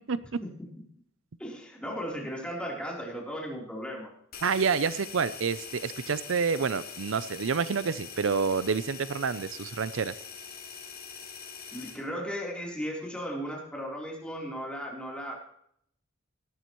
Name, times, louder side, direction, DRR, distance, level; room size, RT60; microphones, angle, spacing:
voice 1, 1.4-4.1 11.7-15.4, equal, 5° left, -3 dB, 3.6 m, -36 dB
sound 1, 4.3-12.0, left 6 dB, 50° left, 4.2 m, -43 dB
voice 2, 4.4-10.1, right 5 dB, 75° right, 15 dB, 0.6 m, -28 dB
18.0 x 13.0 x 3.1 m, 0.69 s
head